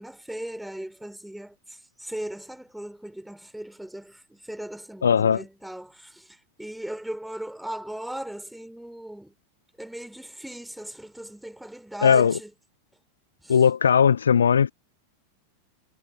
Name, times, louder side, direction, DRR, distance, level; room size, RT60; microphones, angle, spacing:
voice 1, 0.0-9.3 9.8-12.5 13.4-13.6, right 1 dB, ahead, 3.7 m, -38 dB
voice 2, 5.0-5.4 12.0-12.3 13.5-14.7, left 7 dB, 70° left, 0.3 m, -18 dB
figure-of-eight pair, 90°, 0 cm